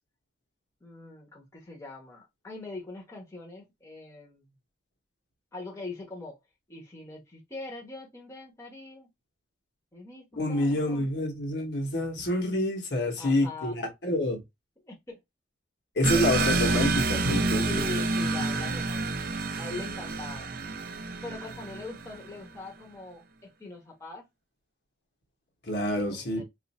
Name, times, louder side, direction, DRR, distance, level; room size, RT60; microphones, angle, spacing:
voice 1, 0.8-4.5 5.5-6.4 6.7-9.1 9.9-11.1 13.2-13.8 14.8-15.2 16.1-16.4 17.6-20.5 21.2-24.2 25.8-26.4, left 2 dB, 15° left, 1.0 m, -42 dB
voice 2, 10.4-14.4 16.0-17.8 25.6-26.4, left 1 dB, 65° left, 1.1 m, -27 dB
sound 1, 16.0-22.3, right 3 dB, 50° right, 0.5 m, -28 dB
2.5 x 2.5 x 4.1 m
head